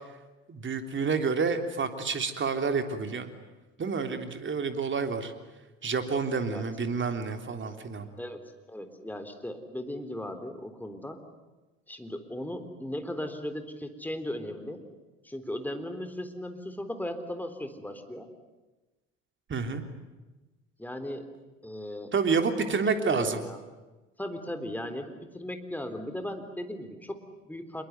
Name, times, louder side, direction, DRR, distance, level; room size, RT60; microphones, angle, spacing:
voice 1, 0.5-3.3 3.8-5.3 5.8-8.1 19.5-19.8 22.1-23.4, right 5 dB, 30° right, 6 dB, 3.4 m, -29 dB
voice 2, 8.7-11.2 11.9-14.8 15.2-18.3 20.8-21.3 21.6-22.1 22.8-23.6 24.2-27.8, left 1 dB, 5° left, 7 dB, 3.7 m, -37 dB
26.5 x 23.0 x 9.4 m, 1.2 s
figure-of-eight pair, 65°, 38 cm